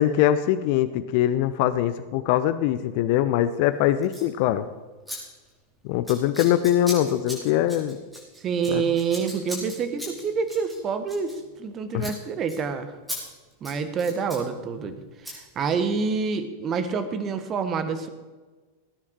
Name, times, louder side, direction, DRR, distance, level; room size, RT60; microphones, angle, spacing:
voice 1, 0.0-4.7 5.8-8.0 8.7-8.8 11.9-12.1, left 12 dB, 45° left, 12 dB, 0.6 m, -22 dB
Scissors, 4.0-4.3 5.1-5.2 5.4-5.7 6.0-11.7 12.0-12.2 12.5-12.6 13.1-13.2 13.5-14.4 15.2-15.4, equal, 5° right, 4.9 m, -38 dB
voice 2, 8.4-13.0 13.6-18.1, right 5 dB, 30° right, 10 dB, 1.4 m, -27 dB
19.0 x 9.9 x 4.6 m, 1.3 s
figure-of-eight pair, 90°, 0 cm